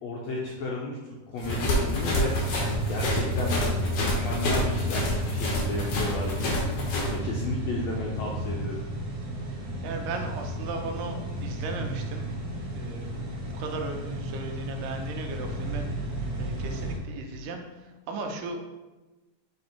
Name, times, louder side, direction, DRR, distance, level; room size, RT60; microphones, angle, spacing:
voice 1, 0.0-2.3 2.9-6.5 7.1-8.8, left 2 dB, 80° left, -3 dB, 1.5 m, -33 dB
sound 1, 1.4-7.1, left 1 dB, 65° left, 2.5 m, -28 dB
sound 2, 1.4-17.0, right 1 dB, 50° right, 1.2 m, -32 dB
voice 2, 9.6-12.3 12.7-15.8 16.4-17.6 18.1-18.6, right 3 dB, 80° right, 4 dB, 2.3 m, -36 dB
7.7 x 3.5 x 4.4 m, 1.1 s
omnidirectional pair, 3.9 m